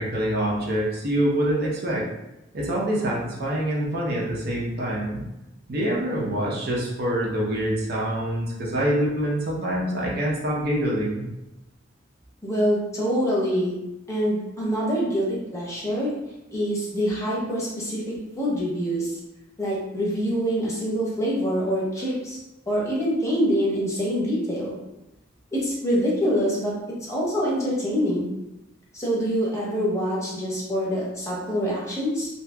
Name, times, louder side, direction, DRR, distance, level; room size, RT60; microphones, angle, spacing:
voice 1, 0.0-2.1 2.5-5.2 5.7-11.3, right 1 dB, 55° right, -4 dB, 0.6 m, -25 dB
voice 2, 12.4-13.7 14.1-16.1 16.5-18.0 18.4-19.2 19.6-22.4 22.7-24.7 25.5-26.7 27.0-28.3 28.9-32.3, equal, 15° left, -5 dB, 0.7 m, -25 dB
2.7 x 2.7 x 2.2 m, 0.93 s
head